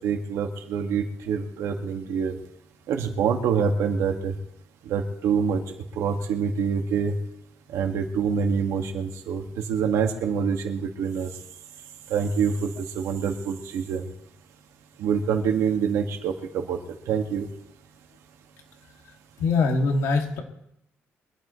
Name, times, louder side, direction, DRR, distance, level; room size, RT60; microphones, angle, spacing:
voice 1, 0.0-2.4 2.9-4.3 4.9-5.6 6.0-7.1 7.7-11.3 12.1-14.0 15.0-16.8 17.1-17.5, right 6 dB, 80° right, 3 dB, 2.1 m, -26 dB
voice 2, 19.4-20.4, left 3 dB, 75° left, 2 dB, 2.6 m, -22 dB
24.0 x 12.5 x 3.3 m, 0.79 s
cardioid pair, 160°, 5 cm